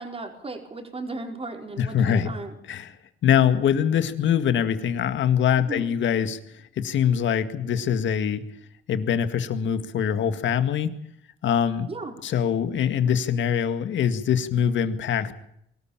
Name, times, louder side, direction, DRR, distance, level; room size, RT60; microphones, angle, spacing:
voice 1, 0.0-2.5 5.6-5.9 11.9-12.2, right 3 dB, 30° right, 3 dB, 4.8 m, -35 dB
voice 2, 1.8-2.3 2.7-2.9 3.2-6.4 6.8-8.4 8.9-10.9 11.4-11.9 12.2-15.4, left 8 dB, 70° left, 10 dB, 2.0 m, -23 dB
23.5 x 13.5 x 8.8 m, 0.73 s
cardioid pair, 90°, 20 cm